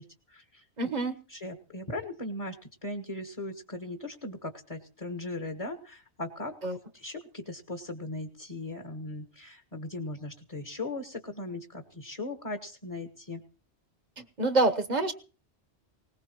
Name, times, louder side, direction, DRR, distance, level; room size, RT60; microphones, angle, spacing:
voice 1, 0.0-0.6 1.3-2.6 2.8-13.4, left 2 dB, 30° left, 5 dB, 1.7 m, -38 dB
voice 2, 0.8-1.2 6.6-6.8 14.2-15.1, right 3 dB, 40° right, 9 dB, 1.4 m, -27 dB
20.5 x 19.0 x 3.1 m, 0.37 s
omnidirectional pair, 1.1 m